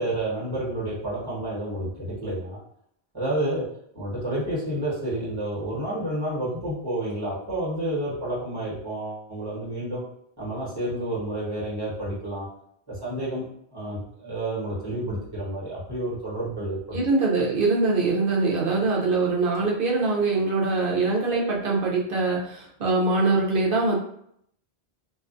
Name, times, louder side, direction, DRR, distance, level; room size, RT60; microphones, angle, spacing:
voice 1, 0.0-2.6 3.1-3.6 3.9-10.0 10.4-12.5 12.9-13.5 13.7-17.0, right 1 dB, 20° right, -9 dB, 1.1 m, -30 dB
voice 2, 16.9-24.0, right 3 dB, 60° right, -3 dB, 0.7 m, -23 dB
2.4 x 2.3 x 2.4 m, 0.70 s
omnidirectional pair, 1.1 m